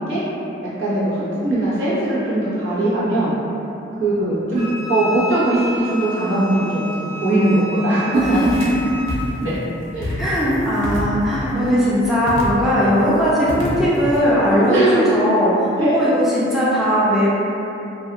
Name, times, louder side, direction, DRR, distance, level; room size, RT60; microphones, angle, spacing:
voice 1, 0.8-3.3 4.0-6.9 7.2-8.4 9.4-9.5 9.9-10.1 14.7-15.2 15.8-16.0, right 1 dB, 90° right, -10 dB, 0.9 m, -19 dB
Wind instrument woodwind instrument, 4.5-9.2, left 1 dB, 65° right, 0.7 m, -32 dB
sound 1, 8.1-8.8 9.1-9.4 10.0-10.5 10.8-11.7 12.3-12.9 13.5-14.2, left 1 dB, 80° left, 0.5 m, -28 dB
voice 2, 8.2-8.6 10.2-17.3, equal, ahead, -10 dB, 0.4 m, -18 dB
2.3 x 2.3 x 2.8 m, 2.9 s
head